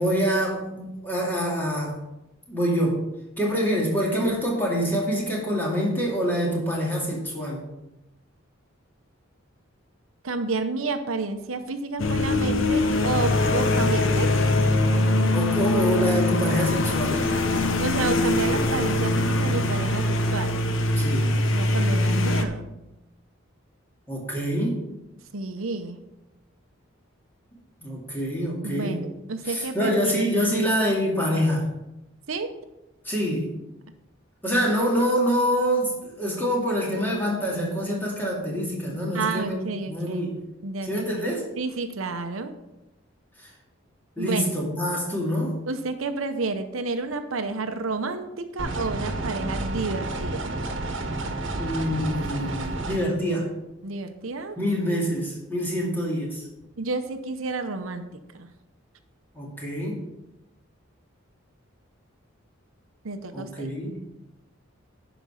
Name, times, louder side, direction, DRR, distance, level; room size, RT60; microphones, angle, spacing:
voice 1, 0.0-2.0 2.5-3.0 3.4-7.6 15.3-17.2 20.9-21.3 24.1-24.8 27.8-29.0 29.4-31.7 33.0-33.5 34.4-39.6 39.9-40.3 40.8-41.4 43.4-43.5 44.2-45.5 51.6-53.5 54.6-56.5 59.3-60.0 63.3-64.0, equal, 10° left, -3 dB, 2.4 m, -26 dB
voice 2, 10.2-14.3 17.8-20.5 21.5-22.7 25.3-26.0 28.6-30.3 32.3-32.5 39.1-40.2 40.6-41.3 41.6-42.5 44.2-44.4 45.7-50.5 53.8-54.6 56.8-58.0 58.3-58.5 63.0-63.7, right 3 dB, 80° right, 8 dB, 0.8 m, -30 dB
sound 1, 12.0-22.4, left 2 dB, 70° left, 0.9 m, -22 dB
sound 2, 48.6-53.0, right 2 dB, 65° right, 1.3 m, -30 dB
11.0 x 5.1 x 5.7 m, 0.96 s
head